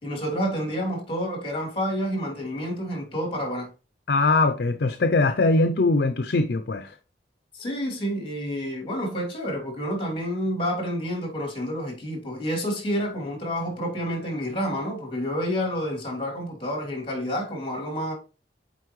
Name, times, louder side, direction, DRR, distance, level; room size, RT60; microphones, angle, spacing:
voice 1, 0.0-3.7 7.5-18.1, equal, 30° left, 2.8 m, -29 dB
voice 2, 4.1-6.9, left 3 dB, 60° left, 0.6 m, -21 dB
8.3 x 4.4 x 3.1 m
head